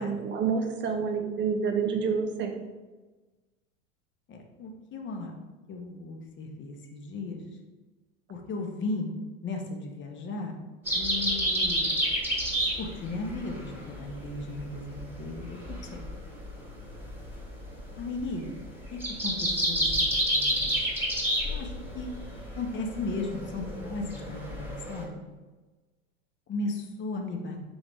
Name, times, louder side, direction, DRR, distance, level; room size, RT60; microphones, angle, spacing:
voice 1, 0.0-2.5, right 6 dB, 30° right, 4 dB, 0.7 m, -28 dB
voice 2, 4.3-5.3 5.7-7.5 8.3-9.1 9.4-10.5 10.9-11.9 12.8-16.0 18.0-18.5 18.9-20.7 21.4-22.1 22.6-25.2 26.5-27.6, left 3 dB, 30° left, 3 dB, 0.8 m, -36 dB
sound 1, 10.9-25.0, equal, 5° right, 1.2 m, -30 dB
3.9 x 3.8 x 3.5 m, 1.2 s
hypercardioid pair, 90°, 39 cm